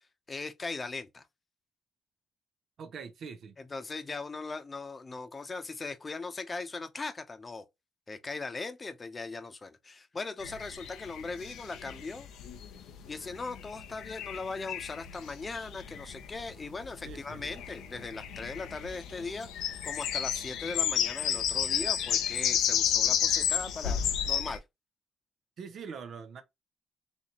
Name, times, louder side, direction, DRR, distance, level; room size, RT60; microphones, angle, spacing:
voice 1, 0.3-1.2 3.6-7.6 8.1-12.3 13.1-24.6, left 3 dB, 30° left, 0.8 m, -39 dB
voice 2, 2.8-3.6 17.0-17.4 25.6-26.4, right 6 dB, 65° right, 0.9 m, -43 dB
sound 1, 10.4-24.6, left 9 dB, 90° left, 0.7 m, -32 dB
4.1 x 3.0 x 3.0 m
cardioid pair, 90°, 0 cm